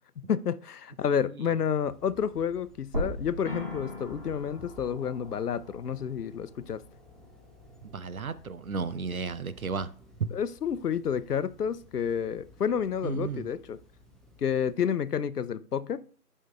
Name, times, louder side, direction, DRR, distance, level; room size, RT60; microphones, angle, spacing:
voice 1, 0.2-6.8 10.3-13.8 14.4-16.0, left 7 dB, 75° left, 0.6 m, -30 dB
sound 1, 1.8-14.7, left 2 dB, ahead, 0.4 m, -55 dB
sound 2, 2.9-7.1 7.5-7.6 9.0-9.1, equal, 35° right, 1.9 m, -40 dB
sound 3, 3.4-15.2, left 3 dB, 35° left, 1.0 m, -49 dB
voice 2, 7.8-9.9 10.2-10.3 13.0-13.5, right 5 dB, 65° right, 0.7 m, -33 dB
9.8 x 5.5 x 2.2 m
figure-of-eight pair, 175°, 46 cm